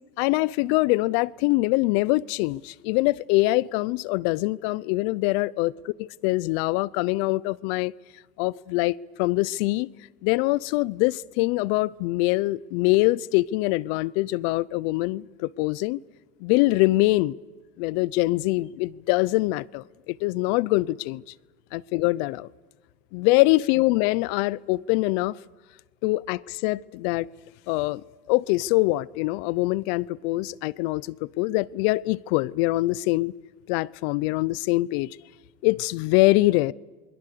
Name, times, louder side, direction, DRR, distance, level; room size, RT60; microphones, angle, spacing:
voice 1, 0.2-7.9 8.4-9.9 10.2-16.0 16.4-17.4 17.8-21.2 21.7-22.5 23.1-25.4 26.0-27.3 27.7-33.3 33.7-35.2 35.6-36.7, left 20 dB, 75° left, 0.7 m, -24 dB
28.5 x 21.5 x 6.8 m
supercardioid pair, 105°, 31 cm